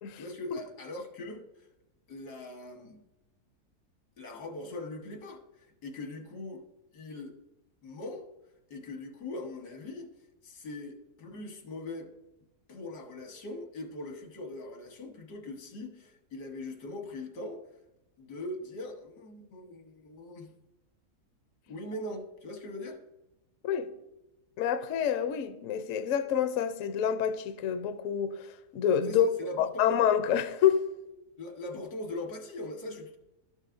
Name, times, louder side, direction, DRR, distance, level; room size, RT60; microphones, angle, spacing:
voice 1, 0.1-1.7 2.1-3.0 4.2-6.6 6.9-7.3 7.8-8.3 8.7-10.1 10.4-12.1 12.7-17.6 18.2-20.5 21.7-23.0 29.0-29.9 31.4-33.2, left 2 dB, 85° left, 1.8 m, -41 dB
voice 2, 24.6-28.5 28.7-29.3 29.6-30.8, left 9 dB, 65° left, 0.9 m, -27 dB
12.0 x 6.3 x 2.5 m
omnidirectional pair, 1.7 m